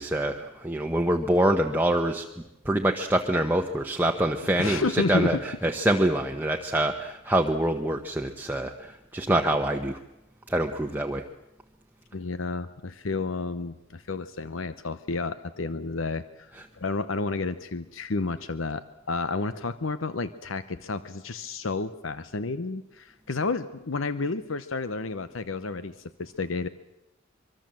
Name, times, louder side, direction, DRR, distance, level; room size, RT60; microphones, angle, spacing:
voice 1, 0.0-2.2 2.6-10.0 10.5-11.2, right 1 dB, 10° right, 3 dB, 1.0 m, -25 dB
voice 2, 4.6-5.4 12.1-26.7, left 3 dB, 80° left, 12 dB, 0.9 m, -31 dB
24.5 x 23.5 x 7.6 m, 0.95 s
head